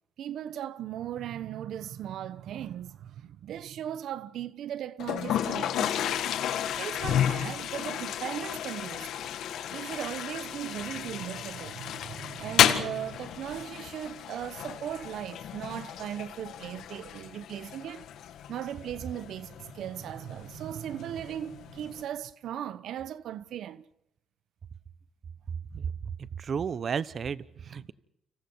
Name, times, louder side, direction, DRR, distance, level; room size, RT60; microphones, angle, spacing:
voice 1, 0.2-6.2 6.8-9.3 9.7-18.1 18.5-23.8 25.7-25.8 27.7-27.9, right 10 dB, 75° right, 1.0 m, -38 dB
Toilet flush, 5.0-22.0, left 10 dB, 80° left, 1.8 m, -32 dB
voice 2, 26.4-27.9, right 6 dB, 50° right, 1.0 m, -32 dB
30.0 x 26.5 x 4.6 m
cardioid pair, 90°, 0 cm